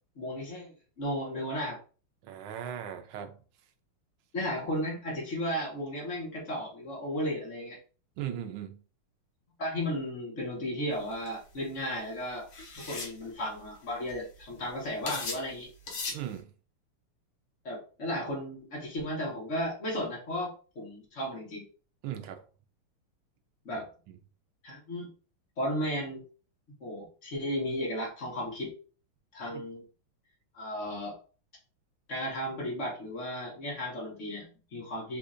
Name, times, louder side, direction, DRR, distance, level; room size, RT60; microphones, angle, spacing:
voice 1, 0.2-1.8 4.3-7.8 9.6-12.5 12.7-15.7 17.6-21.6 23.6-23.9 24.6-25.1 25.6-26.2 26.8-28.7 29.3-29.8 30.5-31.2 32.1-35.2, equal, 40° left, 1.4 m, -34 dB
voice 2, 2.2-3.4 8.2-8.8 16.1-16.5 22.0-22.4 23.7-24.2 29.5-29.6, right 10 dB, 75° right, 1.3 m, -38 dB
sound 1, 11.1-11.3 12.5-13.2 13.8-13.9 14.1-14.4 15.1-15.5 15.9-16.2, left 3 dB, 75° left, 1.8 m, -37 dB
4.2 x 2.7 x 2.5 m
omnidirectional pair, 2.4 m